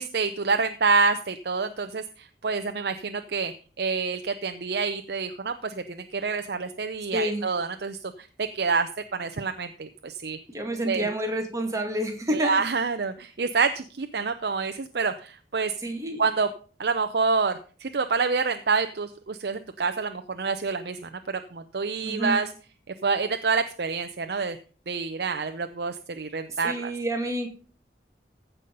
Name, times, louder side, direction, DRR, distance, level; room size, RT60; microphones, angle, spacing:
voice 1, 0.0-10.4 10.9-11.1 12.3-15.7 16.2-16.5 16.8-22.5 23.0-24.6 24.9-26.9, right 4 dB, 60° right, 8 dB, 0.6 m, -27 dB
voice 2, 7.1-7.5 10.5-12.7 15.8-16.2 22.0-22.4 26.6-27.5, right 1 dB, 20° right, 2 dB, 2.0 m, -29 dB
15.0 x 5.7 x 5.3 m, 0.39 s
head